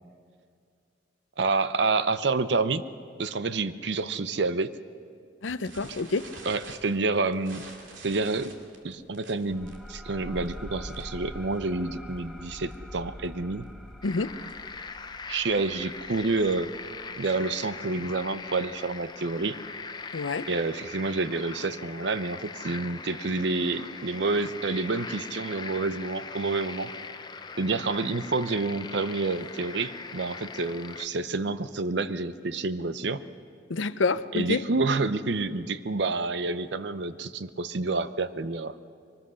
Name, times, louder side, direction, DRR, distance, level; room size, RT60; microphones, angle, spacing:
voice 1, 1.4-2.8 3.2-4.7 6.5-7.6 8.0-8.5 8.8-13.7 15.3-16.7 17.2-19.6 20.5-26.9 27.6-33.2 34.3-38.7, right 3 dB, 65° right, 13 dB, 0.7 m, -28 dB
voice 2, 5.4-6.3 14.0-14.4 20.1-20.5 33.7-34.6, left 3 dB, 85° left, 13 dB, 0.7 m, -28 dB
sound 1, 5.6-11.3 11.5-11.8 12.1-12.2 12.5-12.7 13.2-14.8, right 3 dB, 90° right, 2.6 m, -48 dB
sound 2, 9.5-18.7, equal, ahead, 1.0 m, -44 dB
sound 3, 14.0-31.1, left 4 dB, 25° left, 0.6 m, -41 dB
23.0 x 20.0 x 6.3 m, 2.2 s
head